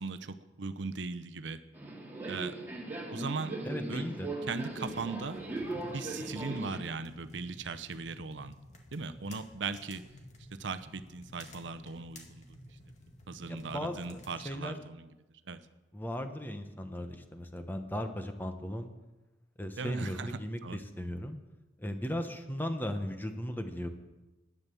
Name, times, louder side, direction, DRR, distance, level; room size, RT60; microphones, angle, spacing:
voice 1, 0.0-1.6 2.3-2.6 3.1-3.6 3.9-4.1 4.5-5.4 5.9-8.5 8.9-10.1 10.5-12.4 13.3-15.1 15.5-15.6 19.8-20.8, right 4 dB, 80° right, 11 dB, 0.7 m, -38 dB
Subway metro underground, 1.7-6.8, right 2 dB, 10° right, 2.6 m, -39 dB
voice 2, 3.6-4.3 13.5-14.7 15.9-18.9 19.6-21.4 21.8-23.9, equal, 10° left, 7 dB, 1.0 m, -37 dB
sound 1, 4.6-14.5, left 1 dB, 40° left, 1.9 m, -54 dB
10.5 x 9.6 x 7.0 m, 1.1 s
head